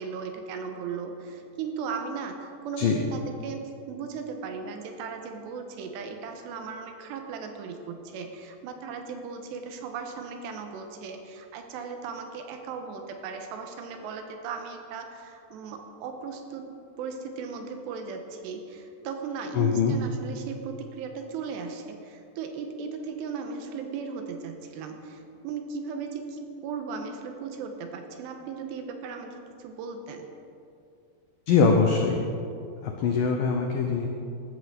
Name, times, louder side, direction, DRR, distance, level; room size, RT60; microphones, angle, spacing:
voice 1, 0.0-16.7 17.0-30.3, right 5 dB, 80° right, 5 dB, 3.0 m, -37 dB
voice 2, 19.6-20.0 31.5-32.2 32.8-34.1, left 5 dB, 85° left, 2 dB, 1.9 m, -22 dB
14.5 x 13.0 x 3.8 m, 2.5 s
omnidirectional pair, 5.1 m